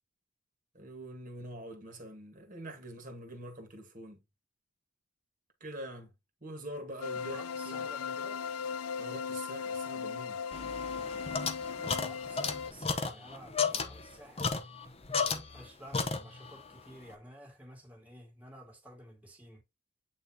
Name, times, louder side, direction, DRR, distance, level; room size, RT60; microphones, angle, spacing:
voice 1, 0.7-4.2 5.6-6.1 6.4-7.4 7.6-7.8 9.0-10.4, right 1 dB, 35° right, 1.5 m, -44 dB
sound 1, 7.0-12.7, left 6 dB, 90° left, 0.5 m, -37 dB
voice 2, 7.3-8.5 11.9-14.6 15.1-19.6, equal, 5° right, 1.8 m, -52 dB
sound 2, 10.5-15.7 15.9-16.6, left 5 dB, 25° left, 0.8 m, -34 dB
8.5 x 4.1 x 2.8 m
head